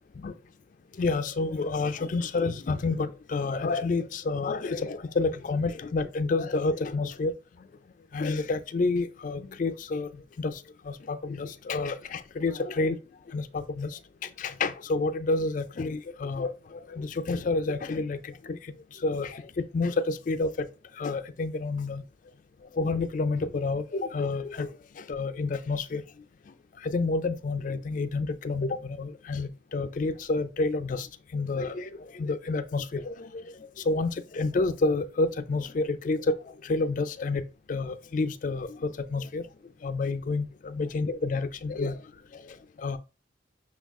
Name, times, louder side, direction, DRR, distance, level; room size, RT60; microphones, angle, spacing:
voice 1, 1.0-7.3 8.1-10.1 10.4-10.6 10.9-13.0 13.3-20.7 21.0-22.0 22.7-24.7 25.0-26.0 26.8-31.1 31.3-33.5 33.9-36.3 36.6-37.4 37.7-39.4 39.8-42.0 42.3-43.0, left 3 dB, 45° left, 0.4 m, -29 dB
6.0 x 2.3 x 3.5 m
head